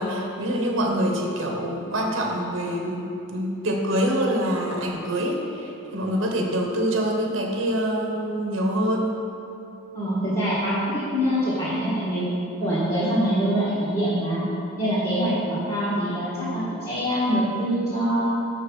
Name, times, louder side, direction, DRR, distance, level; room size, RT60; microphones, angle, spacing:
voice 1, 0.0-9.2, equal, 65° right, 1 dB, 1.0 m, -25 dB
voice 2, 9.9-12.2 12.6-14.5 14.8-18.4, equal, 30° left, -12 dB, 1.8 m, -24 dB
6.6 x 4.7 x 6.4 m, 2.8 s
head